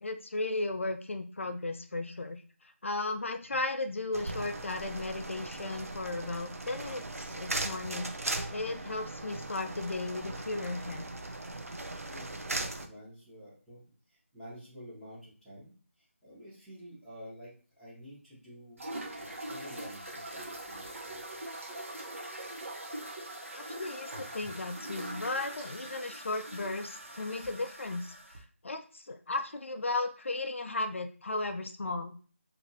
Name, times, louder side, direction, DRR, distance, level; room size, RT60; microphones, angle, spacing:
voice 1, 0.0-8.1 8.5-11.1 23.6-32.2, left 2 dB, 60° left, 7 dB, 0.4 m, -35 dB
sound 1, 4.1-12.9, right 2 dB, 90° right, 0.6 m, -38 dB
sound 2, 4.3-10.0, right 2 dB, 40° right, 0.3 m, -51 dB
voice 2, 12.1-13.8 14.1-15.7 16.2-18.8 19.2-21.2 21.5-21.7, equal, ahead, -15 dB, 0.8 m, -50 dB
sound 3, 18.8-28.4, right 1 dB, 70° right, 1.0 m, -42 dB
2.8 x 2.5 x 2.7 m, 0.40 s
figure-of-eight pair, 170°, 8 cm